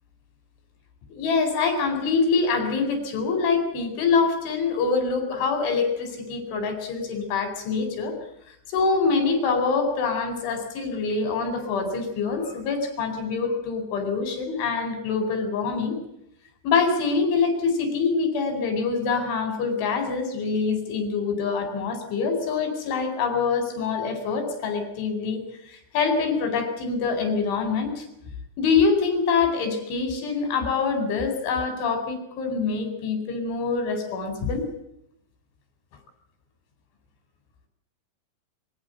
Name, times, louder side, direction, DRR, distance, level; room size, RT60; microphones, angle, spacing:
voice 1, 1.1-8.2 8.7-16.0 16.6-25.4 25.7-28.1 28.6-34.6, left 4 dB, 70° left, 6 dB, 6.9 m, -25 dB
24.0 x 15.5 x 8.0 m, 0.78 s
omnidirectional pair, 5.8 m